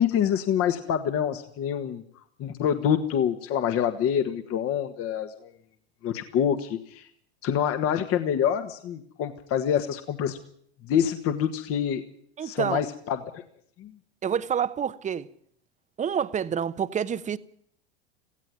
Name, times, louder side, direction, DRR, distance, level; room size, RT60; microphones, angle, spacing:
voice 1, 0.0-2.0 2.4-5.5 6.0-7.1 7.4-10.4 10.8-12.0 12.4-13.2 13.8-13.9, left 9 dB, 40° left, 1.6 m, -26 dB
voice 2, 12.4-12.8 14.2-15.3 16.0-17.4, right 8 dB, 20° right, 0.9 m, -28 dB
17.5 x 15.5 x 9.4 m
hypercardioid pair, 90°, 34 cm